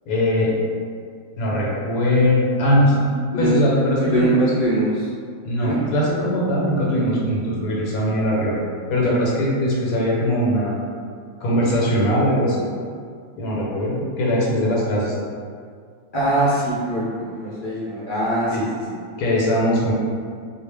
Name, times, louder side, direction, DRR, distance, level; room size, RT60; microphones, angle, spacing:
voice 1, 0.1-0.5 1.4-3.0 3.4-4.5 5.4-8.5 8.9-10.8 11.4-12.7 13.4-15.1 18.5-18.6 19.2-19.9, equal, 90° left, -5 dB, 1.1 m, -20 dB
voice 2, 4.0-5.1 5.6-5.8 16.1-18.6, right 1 dB, 70° left, -9 dB, 0.5 m, -22 dB
2.4 x 2.1 x 3.2 m, 2.1 s
omnidirectional pair, 1.5 m